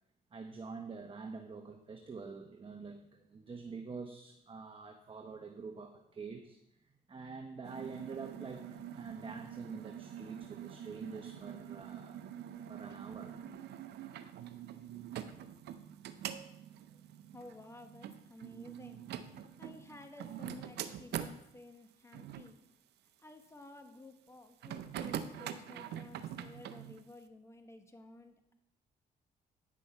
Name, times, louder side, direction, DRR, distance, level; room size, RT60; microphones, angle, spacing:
voice 1, 0.3-12.2 12.6-13.5, right 4 dB, 30° right, 4 dB, 0.9 m, -46 dB
sound 1, 7.6-21.4 22.1-22.5 24.6-27.0, right 10 dB, 80° right, 0.6 m, -45 dB
voice 2, 17.3-19.1 19.6-22.6 23.2-28.5, left 2 dB, 15° left, 6 dB, 1.3 m, -53 dB
9.5 x 6.3 x 4.4 m, 0.81 s
supercardioid pair, 70°, 17 cm